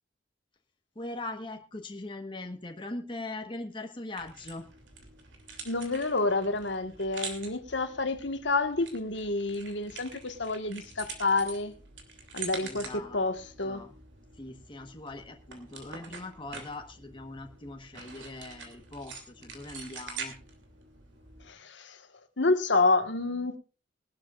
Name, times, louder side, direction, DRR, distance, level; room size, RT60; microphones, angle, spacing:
voice 1, 0.9-4.7 12.6-13.2 13.6-13.9 14.3-20.3, left 2 dB, 25° left, 1.3 m, -41 dB
sound 1, 4.2-21.5, right 5 dB, 75° right, 3.0 m, -45 dB
voice 2, 5.6-11.7 12.3-13.9 21.4-22.1 22.4-23.6, left 3 dB, 70° left, 1.5 m, -29 dB
21.0 x 12.0 x 2.5 m
head